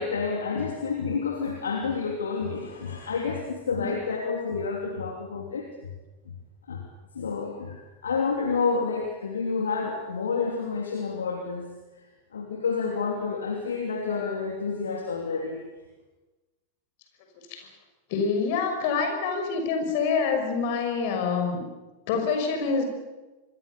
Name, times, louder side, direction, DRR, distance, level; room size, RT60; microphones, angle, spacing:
voice 1, 0.0-5.9 6.7-6.8 7.1-11.7 12.3-15.6, left 5 dB, 70° left, 2 dB, 3.0 m, -29 dB
voice 2, 18.1-21.7 22.1-22.8, left 5 dB, 50° left, 5 dB, 6.2 m, -26 dB
26.0 x 22.0 x 7.0 m, 1.2 s
figure-of-eight pair, 90°, 0 cm